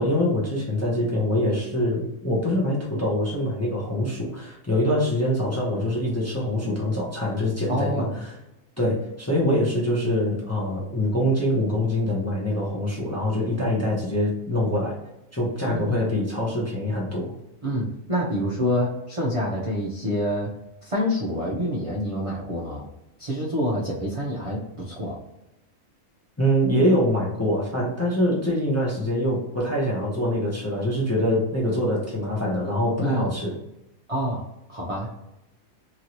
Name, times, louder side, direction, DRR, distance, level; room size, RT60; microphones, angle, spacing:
voice 1, 0.0-8.3 8.8-15.0 15.3-17.3 26.4-33.5, equal, 15° left, -4 dB, 0.6 m, -24 dB
voice 2, 7.7-8.2 15.6-16.0 17.6-20.5 20.8-22.9 23.2-25.2 33.0-33.3 34.1-35.1, equal, 40° right, -4 dB, 0.5 m, -27 dB
3.0 x 2.6 x 3.0 m, 0.89 s
omnidirectional pair, 1.4 m